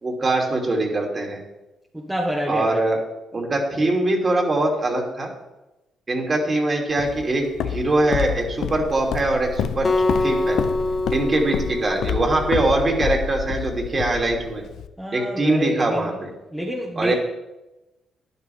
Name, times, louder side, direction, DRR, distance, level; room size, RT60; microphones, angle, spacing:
voice 1, 0.0-1.4 2.5-3.0 3.3-5.3 6.1-9.9 10.2-10.6 11.1-14.6 15.1-16.3 17.0-17.1, right 2 dB, 35° right, 0 dB, 2.7 m, -22 dB
voice 2, 1.9-2.8 11.0-11.1 15.0-16.1 16.5-17.1, equal, 10° right, -1 dB, 1.4 m, -28 dB
Walk footsteps, 7.0-14.9, left 9 dB, 75° left, 0.6 m, -29 dB
Acoustic guitar, 9.8-13.1, left 2 dB, 30° left, 0.7 m, -25 dB
12.5 x 10.5 x 3.5 m, 1.0 s
cardioid pair, 90°, 0 cm